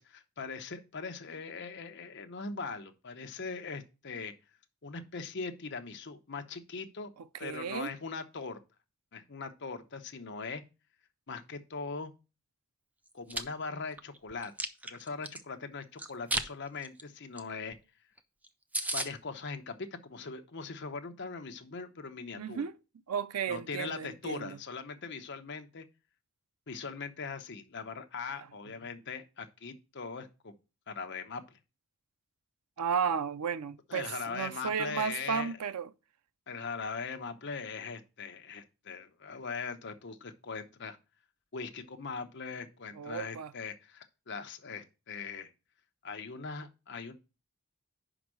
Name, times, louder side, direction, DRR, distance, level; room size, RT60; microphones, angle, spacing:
voice 1, 0.0-4.3 4.8-7.1 7.4-8.6 9.1-10.6 11.3-12.1 13.1-14.5 14.9-17.8 18.9-22.6 23.5-25.9 26.7-30.5 30.9-31.4 33.9-35.5 36.5-41.0 41.5-45.5 46.0-47.1, left 4 dB, 50° left, 0.8 m, -40 dB
voice 2, 7.4-7.9 22.4-22.7 23.1-24.6 32.8-35.9 42.9-43.5, right 7 dB, 90° right, 0.5 m, -33 dB
Chewing mastication, 13.1-13.4 13.9-15.4 16.0-16.5 16.8-17.0 17.4-17.5 17.7-17.8 18.2-18.3 18.4-18.5 18.7-19.1, right 2 dB, 5° right, 0.4 m, -33 dB
5.3 x 5.0 x 6.1 m
head